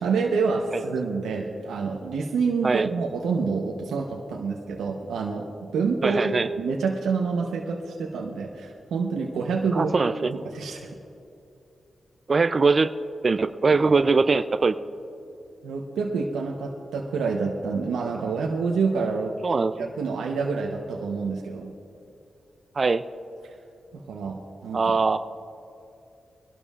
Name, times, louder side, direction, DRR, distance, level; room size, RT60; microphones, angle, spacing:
voice 1, 0.0-10.0 10.2-10.9 13.8-13.9 15.6-19.4 19.8-21.7 23.4-23.6 23.9-24.9, right 4 dB, 90° right, 0 dB, 0.9 m, -27 dB
voice 2, 2.6-2.9 6.0-6.5 9.7-10.3 12.3-12.9 13.2-14.7 19.4-19.9 22.8-23.0 24.7-25.2, right 4 dB, 45° right, 11 dB, 0.4 m, -22 dB
23.5 x 12.0 x 2.4 m, 2.7 s
cardioid pair, 55°, 0 cm